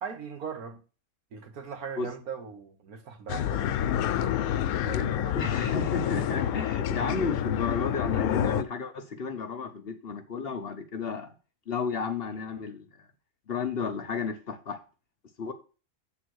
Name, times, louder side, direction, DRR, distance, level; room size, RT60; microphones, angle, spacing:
voice 1, 0.0-0.8 1.3-4.0 4.2-5.4 6.0-6.2, right 6 dB, 90° right, 1.7 m, -40 dB
sound 1, 3.3-8.6, left 10 dB, 80° left, 1.1 m, -28 dB
voice 2, 5.3-11.3 11.7-12.9 13.5-14.8 15.4-15.5, left 5 dB, 50° left, 0.9 m, -32 dB
7.9 x 3.7 x 6.3 m
omnidirectional pair, 1.5 m